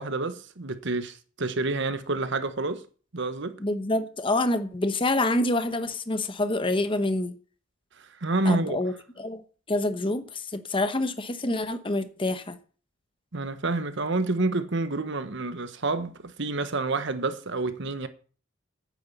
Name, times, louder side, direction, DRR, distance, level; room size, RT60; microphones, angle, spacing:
voice 1, 0.0-2.8 3.1-3.6 8.0-8.8 13.3-18.1, right 2 dB, 60° right, 1.2 m, -28 dB
voice 2, 3.6-7.4 8.4-9.4 9.7-12.6, left 2 dB, 25° left, 1.0 m, -27 dB
9.5 x 9.3 x 7.1 m
head